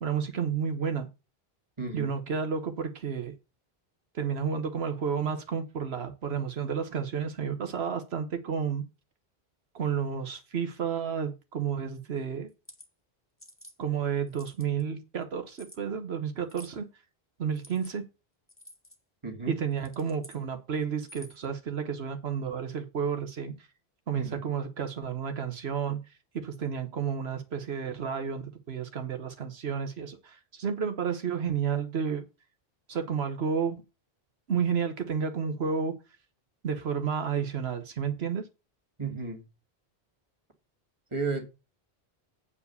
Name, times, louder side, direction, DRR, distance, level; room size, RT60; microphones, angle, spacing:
voice 1, 0.0-1.1 1.9-3.3 4.1-8.9 9.7-12.5 13.8-16.9 17.4-18.0 19.5-23.5 24.1-26.1 26.3-32.2 32.9-33.8 34.5-36.0 36.6-38.5, right 7 dB, 80° right, 1.2 m, -31 dB
voice 2, 1.8-2.2 19.2-19.6 24.1-24.4 39.0-39.4 41.1-41.5, right 4 dB, 30° right, 2.0 m, -33 dB
sound 1, 12.5-12.9 13.4-13.8 14.3-14.8 15.5-15.8 16.5-16.8 17.5-17.9 18.5-19.0 19.7-20.4 21.0-21.4, equal, 10° left, 1.5 m, -50 dB
8.5 x 4.7 x 6.7 m
omnidirectional pair, 1.1 m